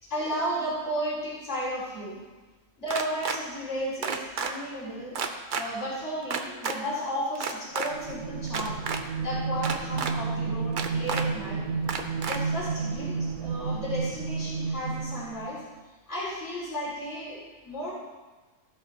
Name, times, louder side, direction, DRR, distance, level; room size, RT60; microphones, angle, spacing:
voice 1, 0.0-2.2 2.8-5.2 5.5-8.8 9.2-11.6 12.2-15.6 16.1-17.9, equal, 60° left, -7 dB, 3.6 m, -33 dB
sound 1, 2.9-3.4 4.0-4.5 5.1-5.6 6.3-6.8 7.4-7.9 8.5-9.0 9.6-10.1 10.8-11.2 11.9-12.4, right 6 dB, 50° right, 0.7 m, -30 dB
sound 2, 7.9-15.6, right 4 dB, 80° right, 1.4 m, -31 dB
15.0 x 6.3 x 3.9 m, 1.2 s
omnidirectional pair, 1.3 m